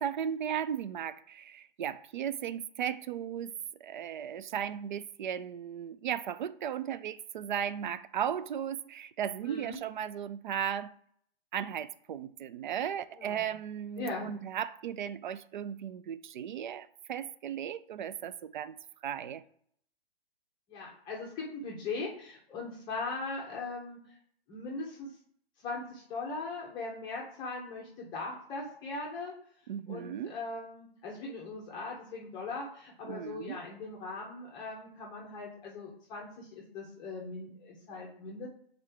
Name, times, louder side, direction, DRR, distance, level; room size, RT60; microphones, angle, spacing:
voice 1, 0.0-3.5 3.8-10.9 11.5-18.8 19.0-19.4 29.7-30.3 33.0-33.6, right 9 dB, 50° right, 0.4 m, -36 dB
voice 2, 9.4-9.8 13.1-13.5 14.0-14.3 20.7-24.2 24.5-25.2 25.6-29.3 29.9-38.5, left 3 dB, 15° left, 0.7 m, -40 dB
7.2 x 3.8 x 3.4 m
hypercardioid pair, 150°, 31 cm